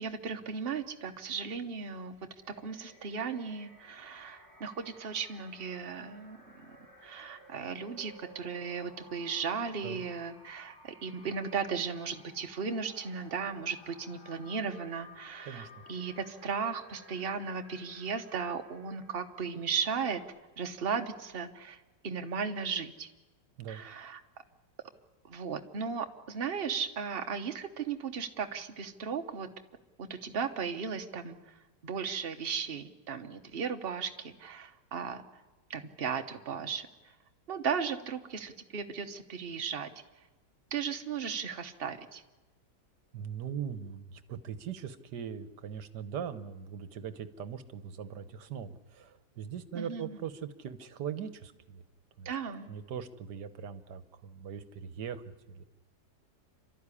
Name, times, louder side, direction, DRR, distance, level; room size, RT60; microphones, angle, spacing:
voice 1, 0.0-2.2 2.5-6.4 7.0-20.2 20.6-23.1 23.7-24.2 25.3-29.5 30.0-31.4 31.8-35.4 35.7-36.9 37.5-39.9 40.7-42.2 49.7-50.2 52.2-52.7, right 6 dB, 35° right, 6 dB, 1.2 m, -36 dB
sound 1, 2.4-20.2, left 1 dB, 40° left, 5.4 m, -56 dB
voice 2, 43.1-51.8 52.2-52.3 52.7-55.6, right 8 dB, 70° right, 12 dB, 1.6 m, -40 dB
28.0 x 13.0 x 9.9 m, 1.2 s
omnidirectional pair, 2.0 m